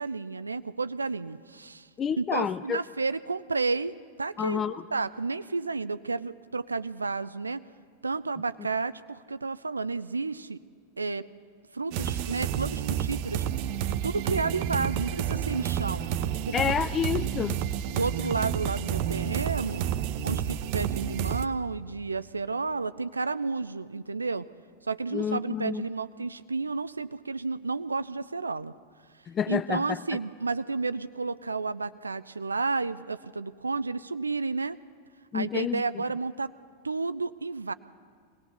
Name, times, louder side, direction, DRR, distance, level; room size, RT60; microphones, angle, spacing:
voice 1, 0.0-1.9 2.2-7.6 8.0-10.6 11.0-11.2 11.7-13.4 14.0-16.0 16.5-16.6 17.9-19.8 20.2-24.4 24.9-28.7 29.5-34.8 35.3-36.5 36.8-37.7, right 4 dB, 80° right, 14 dB, 0.4 m, -31 dB
voice 2, 2.0-2.8 4.4-4.8 16.5-17.6 25.1-25.8 29.3-30.0 35.3-36.0, left 8 dB, 25° left, 14 dB, 0.4 m, -29 dB
sound 1, 11.9-21.5, right 10 dB, 45° right, 0.8 m, -30 dB
22.5 x 18.0 x 6.8 m, 2.1 s
figure-of-eight pair, 90°, 0 cm